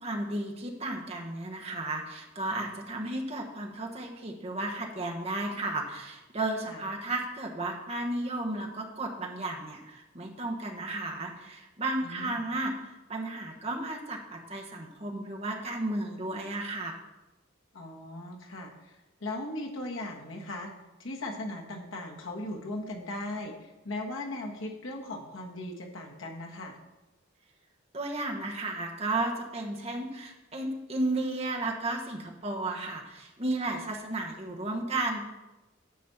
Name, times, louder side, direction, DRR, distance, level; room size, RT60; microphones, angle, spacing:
voice 1, 0.0-17.0 27.9-35.3, right 2 dB, 30° right, 1 dB, 1.2 m, -33 dB
voice 2, 12.0-12.4 17.7-18.7 19.2-20.7 21.0-26.8, left 1 dB, 70° left, 1 dB, 1.4 m, -38 dB
10.0 x 4.3 x 7.0 m, 1.0 s
head